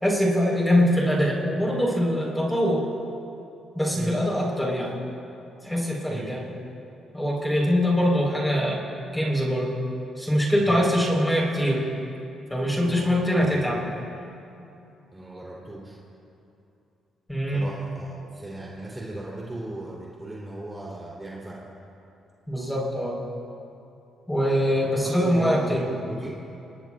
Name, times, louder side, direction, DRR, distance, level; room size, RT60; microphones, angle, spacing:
voice 1, 0.0-2.8 3.7-4.9 5.6-6.4 7.1-8.8 9.1-9.7 10.2-11.8 12.5-13.8 17.3-17.7 22.5-23.2 24.3-25.9, equal, 5° left, -3 dB, 4.3 m, -23 dB
voice 2, 12.8-13.8 15.1-16.0 17.5-21.6 24.8-26.3, right 1 dB, 15° right, -5 dB, 3.4 m, -37 dB
24.5 x 19.5 x 2.5 m, 2.7 s
cardioid pair, 90°, 0 cm